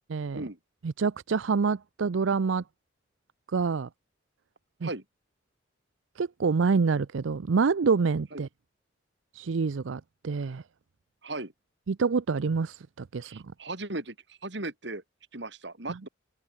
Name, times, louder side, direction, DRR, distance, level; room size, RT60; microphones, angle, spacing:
voice 1, 0.1-0.4 0.8-2.6 3.5-3.9 4.8-4.9 6.2-8.5 9.3-10.6 11.9-13.4 15.9-16.0, right 5 dB, 85° right, 0.5 m, -27 dB
voice 2, 13.2-15.0 15.3-16.1, right 2 dB, 65° right, 3.6 m, -37 dB
head